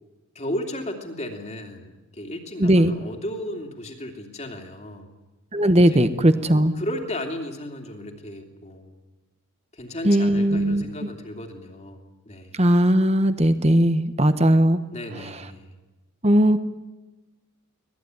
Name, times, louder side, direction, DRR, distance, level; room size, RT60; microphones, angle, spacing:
voice 1, 0.3-5.1 5.9-6.0 6.5-9.0 9.7-12.7 14.9-15.8, left 1 dB, 30° left, 2 dB, 2.9 m, -35 dB
voice 2, 2.6-2.9 5.5-6.7 10.0-10.8 12.6-14.8 16.2-16.6, right 1 dB, 30° right, 10 dB, 1.3 m, -18 dB
25.0 x 19.0 x 9.7 m, 1.1 s
head